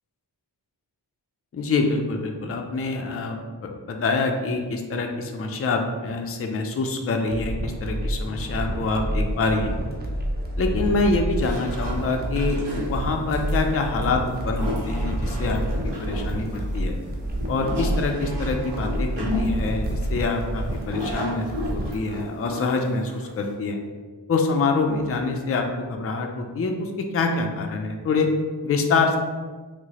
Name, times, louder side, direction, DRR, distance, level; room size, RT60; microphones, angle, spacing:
voice 1, 1.5-9.8 10.6-17.0 17.5-21.5 21.7-23.8 24.3-28.3 28.6-29.2, left 3 dB, 35° left, 3 dB, 0.4 m, -26 dB
sound 1, 7.3-21.9, right 1 dB, 25° right, 0.5 m, -28 dB
sound 2, 11.4-23.5, left 1 dB, 70° right, 0.9 m, -33 dB
4.6 x 2.0 x 2.8 m, 1.4 s
wide cardioid pair, 70°, 42 cm